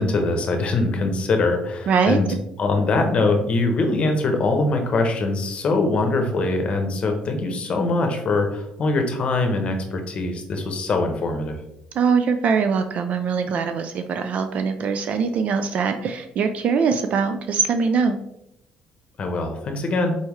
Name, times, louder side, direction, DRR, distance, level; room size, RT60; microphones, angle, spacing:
voice 1, 0.0-2.3 2.6-11.6 19.2-20.1, left 3 dB, 45° left, 4 dB, 0.8 m, -22 dB
voice 2, 1.9-2.2 12.0-18.2, right 5 dB, 55° right, 7 dB, 0.3 m, -22 dB
4.2 x 3.5 x 3.0 m, 0.82 s
cardioid pair, 120°, 3 cm